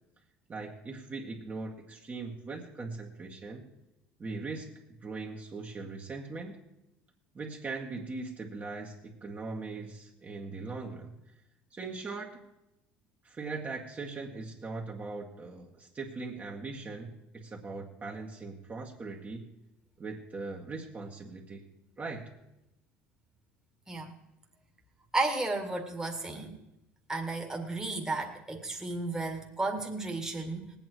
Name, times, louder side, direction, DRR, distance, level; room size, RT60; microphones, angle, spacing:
voice 1, 0.5-3.7 4.2-4.7 5.0-6.6 7.3-11.1 11.7-12.4 13.2-19.5 20.0-21.6 22.0-22.3, right 3 dB, 30° right, -1 dB, 1.9 m, -40 dB
voice 2, 25.1-26.5 27.1-30.7, right 2 dB, 10° right, 1 dB, 2.0 m, -33 dB
19.0 x 8.9 x 4.7 m, 0.89 s
supercardioid pair, 80°, 6 cm